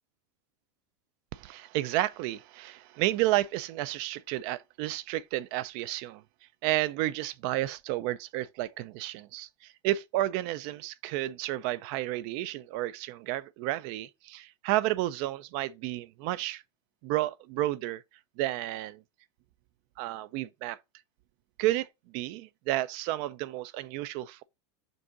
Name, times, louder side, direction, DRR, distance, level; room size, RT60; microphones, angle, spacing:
voice 1, 1.3-6.2 6.6-16.6 17.0-18.0 18.4-19.0 20.0-20.8 21.6-24.4, right 16 dB, 45° right, 0.4 m, -31 dB
5.3 x 3.6 x 5.2 m
supercardioid pair, 160°, 14 cm